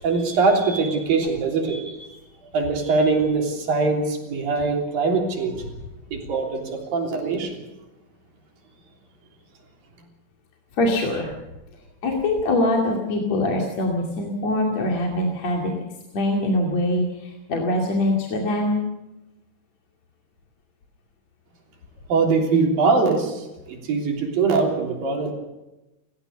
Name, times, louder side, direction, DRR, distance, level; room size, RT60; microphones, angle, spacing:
voice 1, 0.0-2.1 2.5-5.7 6.1-7.6 22.1-25.3, right 4 dB, 70° right, 1 dB, 5.0 m, -22 dB
voice 2, 10.7-11.3 12.0-15.7 16.1-18.9, left 1 dB, 50° left, 0 dB, 3.5 m, -23 dB
30.0 x 15.0 x 6.9 m, 0.99 s
omnidirectional pair, 4.3 m